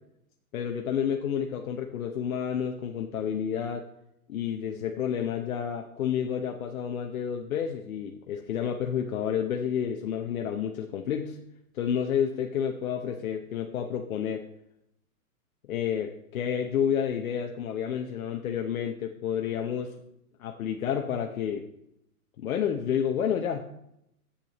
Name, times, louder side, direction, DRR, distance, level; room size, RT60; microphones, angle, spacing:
voice 1, 0.5-3.8 4.3-11.4 11.7-14.4 15.7-19.9 20.4-21.6 22.4-23.7, left 8 dB, 70° left, 3 dB, 0.9 m, -30 dB
10.5 x 8.3 x 3.0 m, 0.79 s
hypercardioid pair, 135°, 44 cm